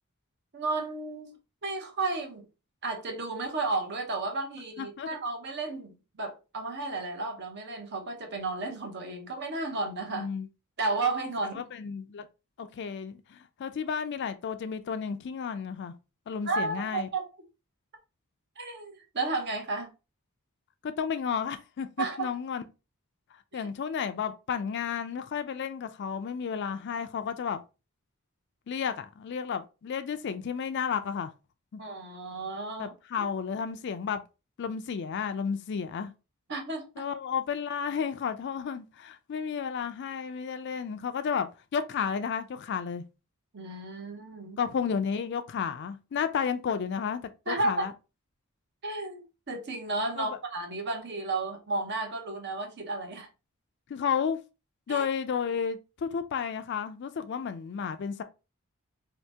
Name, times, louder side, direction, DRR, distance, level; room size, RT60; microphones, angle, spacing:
voice 1, 0.5-1.3 1.6-2.5 2.8-10.3 10.8-11.6 16.5-17.3 18.6-19.9 22.0-22.3 23.5-23.6 31.8-33.3 36.5-37.1 43.5-44.6 47.5-47.8 48.8-53.3 54.9-55.0, right 3 dB, 50° right, 0.8 m, -33 dB
voice 2, 4.8-5.1 10.1-10.5 11.5-12.3 12.6-15.9 16.3-17.1 20.8-22.6 23.5-27.6 28.7-31.3 31.7-31.8 32.8-34.2 34.6-36.1 37.0-43.0 44.6-47.9 50.2-50.4 53.9-54.4 54.9-58.2, left 6 dB, 50° left, 0.3 m, -32 dB
2.8 x 2.6 x 3.3 m
head